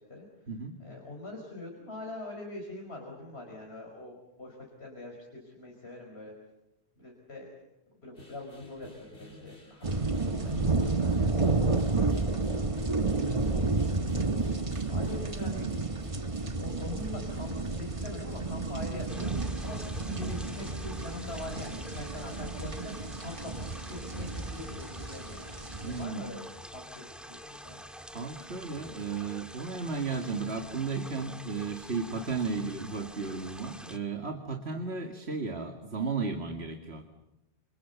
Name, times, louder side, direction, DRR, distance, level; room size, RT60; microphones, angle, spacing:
voice 1, 0.8-6.3 7.0-7.5 8.0-12.1 12.5-13.7 14.9-15.7 16.4-25.4 25.8-26.4 26.7-27.8, left 2 dB, 70° left, 0 dB, 5.6 m, -43 dB
sound 1, 8.1-24.7, left 1 dB, 55° left, 4.2 m, -51 dB
sound 2, 9.8-26.0, right 3 dB, 30° right, 1.4 m, -31 dB
sound 3, 19.1-34.0, equal, ahead, 2.0 m, -47 dB
voice 2, 25.8-26.4 28.1-37.0, right 4 dB, 75° right, 5 dB, 2.2 m, -34 dB
29.0 x 28.5 x 7.1 m, 0.92 s
omnidirectional pair, 1.1 m